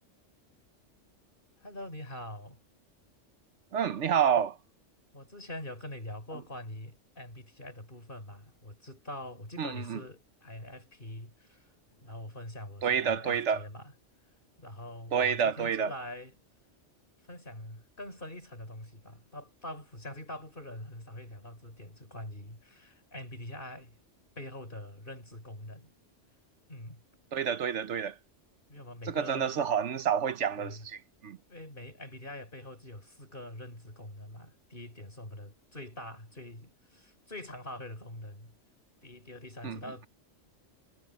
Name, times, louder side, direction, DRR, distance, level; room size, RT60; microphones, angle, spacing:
voice 1, 1.6-2.6 5.1-11.7 12.0-13.9 14.6-16.3 17.3-24.0 24.3-25.9 26.7-27.0 28.7-29.7 30.6-30.9 31.5-38.5 39.0-40.1, left 1 dB, 45° left, 5.0 m, -44 dB
voice 2, 3.7-4.6 9.6-10.0 12.8-13.6 15.1-15.9 27.3-28.2 29.1-31.0 31.2-31.4 39.6-39.8, right 7 dB, 70° right, 1.1 m, -28 dB
omnidirectional pair, 1.3 m